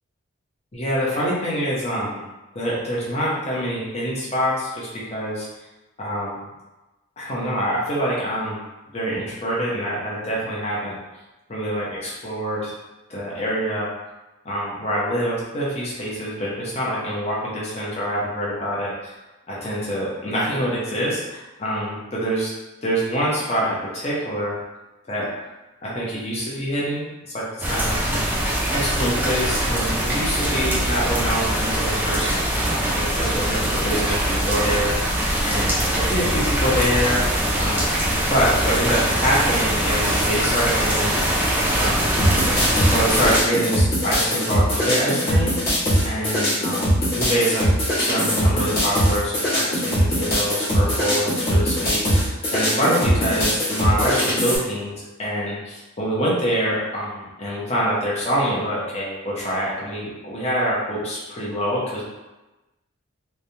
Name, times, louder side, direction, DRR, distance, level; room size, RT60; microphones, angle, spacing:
voice 1, 0.7-2.2 2.5-5.5 6.0-6.4 7.2-8.6 8.9-10.9 11.5-12.7 13.1-13.9 14.4-19.2 19.5-22.5 22.8-24.6 25.1-25.5 25.8-28.2 28.7-35.2 35.4-37.2 37.6-41.4 41.7-42.1 42.8-45.8 46.0-47.7 48.0-62.0, equal, 30° left, -6 dB, 0.7 m, -25 dB
sound 1, 27.6-43.4, right 1 dB, 10° right, 0.3 m, -22 dB
sound 2, 42.2-54.6, equal, 45° left, 1.3 m, -21 dB
3.2 x 2.2 x 2.7 m, 1.1 s
head